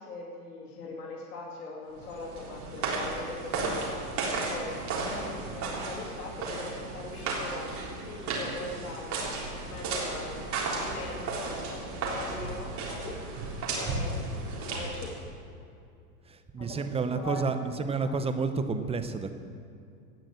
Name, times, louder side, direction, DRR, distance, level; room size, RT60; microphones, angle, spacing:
voice 1, 0.0-4.1 4.5-9.3 9.6-13.2 13.7-15.1 16.6-16.8 17.1-17.5 17.8-18.1, left 3 dB, 85° left, -3 dB, 2.7 m, -41 dB
sound 1, 2.0-15.3, right 3 dB, 40° right, 3.7 m, -34 dB
voice 2, 16.3-19.3, right 4 dB, 15° right, 9 dB, 0.7 m, -30 dB
17.5 x 6.5 x 7.8 m, 2.5 s
hypercardioid pair, 115°, 45 cm